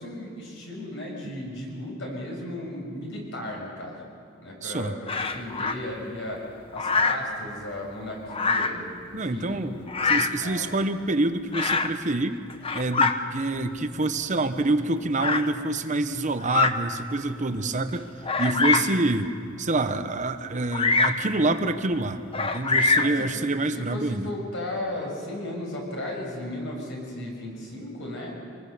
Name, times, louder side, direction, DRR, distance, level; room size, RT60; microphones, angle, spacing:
voice 1, 0.0-4.0 4.4-6.4 6.7-10.7 18.5-18.9 22.9-23.1 23.7-28.4, left 1 dB, 60° left, -1 dB, 6.4 m, -35 dB
voice 2, 4.6-5.0 9.1-12.4 12.7-18.1 18.4-19.3 19.6-24.3, right 2 dB, 35° right, 9 dB, 0.9 m, -27 dB
Bird vocalization bird call bird song, 5.1-5.8 6.8-7.3 8.3-8.8 9.9-10.4 11.5-12.0 12.5-13.2 14.0-14.1 15.2-15.5 16.4-16.8 17.4-17.5 18.2-19.0 20.7-21.2 22.3-23.2, left 4 dB, 25° left, 0.9 m, -24 dB
26.0 x 20.0 x 6.8 m, 2.2 s
head